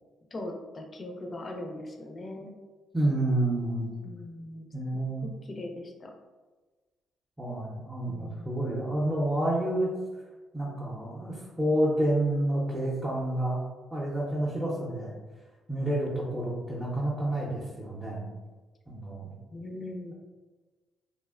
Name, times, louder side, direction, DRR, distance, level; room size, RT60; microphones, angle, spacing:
voice 1, 0.3-2.5 4.0-4.7 5.2-6.1 8.1-8.5 19.5-20.1, left 1 dB, 35° left, 3 dB, 0.4 m, -40 dB
voice 2, 2.9-3.9 4.7-5.3 7.4-9.9 10.5-13.6 13.9-15.2 15.7-18.2 18.9-19.3, right 1 dB, 10° right, -7 dB, 0.6 m, -29 dB
2.6 x 2.0 x 2.4 m, 1.3 s
cardioid pair, 90°, 0 cm